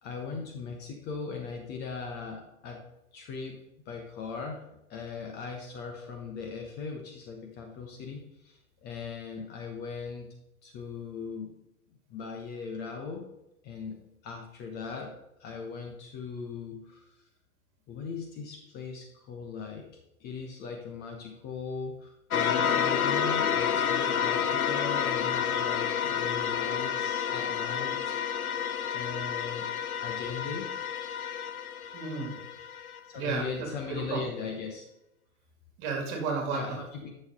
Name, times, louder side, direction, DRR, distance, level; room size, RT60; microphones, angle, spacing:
voice 1, 0.0-2.8 3.1-3.6 3.8-10.3 10.6-11.5 12.1-13.3 13.6-15.1 15.4-17.2 17.9-19.9 20.2-28.1 28.9-29.7 30.0-30.7 33.0-34.8 36.5-37.1, left 5 dB, 25° left, 2 dB, 1.0 m, -39 dB
sound 1, 22.3-33.0, left 8 dB, 75° left, 0.8 m, -29 dB
voice 2, 31.9-32.4 33.1-33.7 34.0-34.2 35.8-36.6, right 5 dB, 35° right, 1 dB, 2.6 m, -32 dB
11.0 x 6.5 x 3.8 m, 0.86 s
figure-of-eight pair, 115°, 43 cm